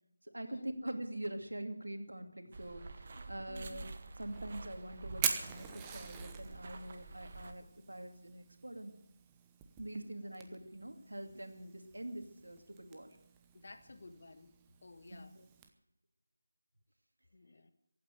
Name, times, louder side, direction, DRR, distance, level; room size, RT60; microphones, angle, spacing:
voice 1, 0.2-3.9 4.2-8.9 9.8-13.1 15.1-15.3, right 1 dB, 80° right, 6 dB, 2.4 m, -44 dB
sound 1, 2.5-7.5, right 3 dB, 35° right, 1.3 m, -48 dB
Fire, 4.2-15.7, right 8 dB, 10° right, 0.9 m, -45 dB
voice 2, 13.5-14.5 14.8-15.5 17.3-17.7, left 2 dB, 55° left, 9 dB, 1.6 m, -54 dB
15.0 x 8.9 x 9.1 m, 0.85 s
figure-of-eight pair, 165°, 0 cm